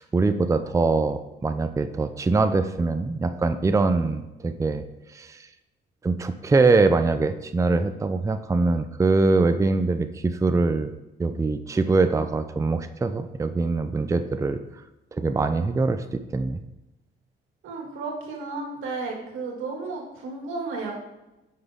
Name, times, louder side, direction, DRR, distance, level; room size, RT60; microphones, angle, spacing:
voice 1, 0.0-4.8 5.1-5.5 6.0-10.9 11.2-14.6 15.2-16.6, right 3 dB, 15° right, 10 dB, 0.5 m, -23 dB
voice 2, 17.6-20.9, right 3 dB, 90° right, -1 dB, 2.2 m, -33 dB
9.3 x 6.0 x 3.6 m, 0.99 s
cardioid pair, 90°, 20 cm